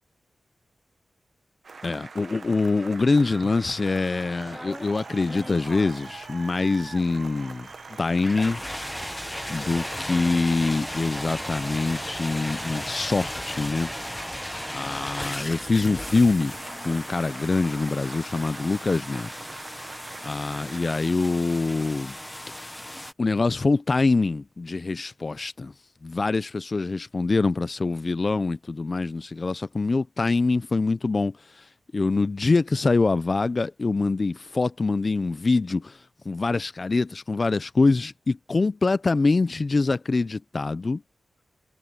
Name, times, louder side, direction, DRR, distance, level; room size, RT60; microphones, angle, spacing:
sound 1, 1.6-21.0, right 4 dB, 55° right, 1.0 m, -43 dB
voice 1, 1.8-7.7 8.0-8.6 9.5-13.9 14.7-16.5 16.8-19.3 20.2-22.1 23.2-25.7 26.0-31.7 31.9-41.0, left 3 dB, 35° left, 0.4 m, -24 dB
sound 2, 4.4-23.1, left 1 dB, 10° left, 0.7 m, -37 dB
sound 3, 4.7-18.3, left 6 dB, 80° left, 3.0 m, -57 dB
wide cardioid pair, 115°, 0 cm